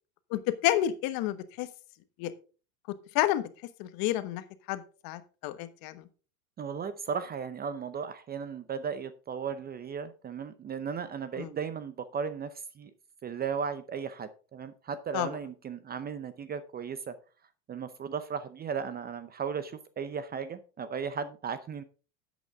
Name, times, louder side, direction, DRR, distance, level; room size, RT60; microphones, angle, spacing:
voice 1, 0.3-1.7 2.2-2.3 3.1-3.4 3.8-4.4 4.7-5.9 11.4-11.5 15.1-15.3, left 13 dB, 45° left, 12 dB, 1.2 m, -29 dB
voice 2, 6.6-12.5 12.8-12.9 13.2-17.1 17.7-21.8, right 6 dB, 20° right, 13 dB, 0.6 m, -36 dB
10.5 x 8.3 x 3.6 m, 0.36 s
hypercardioid pair, 110°, 46 cm